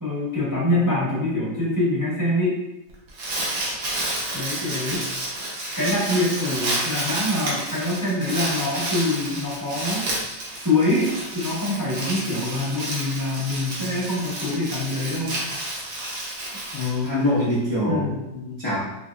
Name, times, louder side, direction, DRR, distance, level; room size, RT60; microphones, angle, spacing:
voice 1, 0.0-2.6 4.3-5.0 5.7-10.1 10.5-15.3 17.9-18.2, left 2 dB, 15° right, -9 dB, 0.8 m, -25 dB
Crumpling crinkling, 2.9-17.5, right 1 dB, 60° right, 1.2 m, -30 dB
voice 2, 16.7-18.8, left 1 dB, 30° left, -10 dB, 0.5 m, -24 dB
4.6 x 2.7 x 2.3 m, 0.93 s
omnidirectional pair, 1.9 m